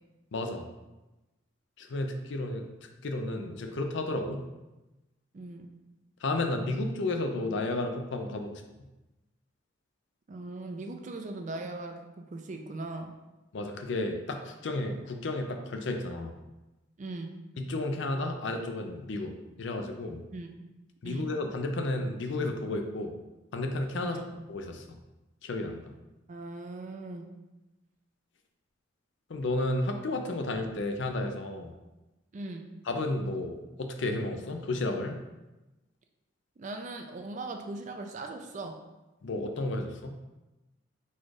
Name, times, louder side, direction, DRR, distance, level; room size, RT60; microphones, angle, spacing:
voice 1, 0.3-0.7 1.8-2.7 3.0-4.4 6.2-8.6 13.5-16.3 17.6-19.3 19.6-20.2 21.0-23.1 23.5-24.2 24.5-24.8 25.4-25.9 29.3-31.7 32.9-35.2 39.2-40.1, left 2 dB, 60° left, 5 dB, 0.5 m, -32 dB
voice 2, 5.3-5.7 10.3-13.1 17.0-17.3 20.3-20.5 21.0-21.3 24.0-24.3 26.3-27.3 32.3-32.7 36.6-38.8, right 2 dB, 35° right, 4 dB, 0.4 m, -39 dB
4.2 x 2.4 x 4.7 m, 1.0 s
head